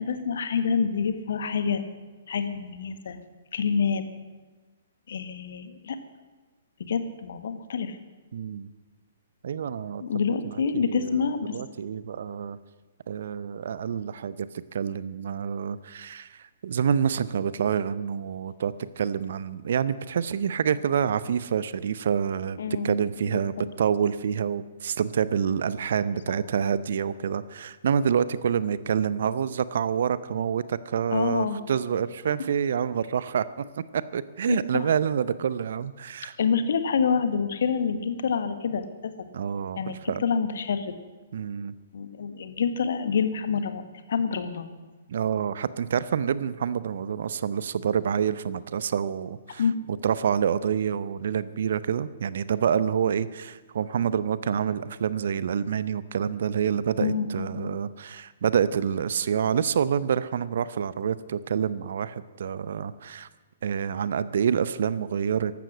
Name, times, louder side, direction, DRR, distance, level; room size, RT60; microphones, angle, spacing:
voice 1, 0.0-1.8 2.3-3.2 3.5-4.0 5.1-6.0 6.8-8.0 10.0-11.6 22.6-23.0 23.3-23.4 31.1-31.6 34.5-34.8 36.4-39.3 39.8-40.9 41.9-43.8 44.1-44.7 49.6-49.7 57.0-57.8, left 6 dB, 60° left, 10 dB, 1.4 m, -27 dB
voice 2, 8.3-8.7 9.4-10.0 10.7-12.6 13.1-14.5 14.7-36.3 39.3-40.2 41.3-41.7 45.1-49.6 49.9-63.3 63.6-65.6, right 7 dB, 60° right, 17 dB, 0.6 m, -27 dB
15.0 x 12.0 x 6.2 m, 1.3 s
figure-of-eight pair, 120°, 0 cm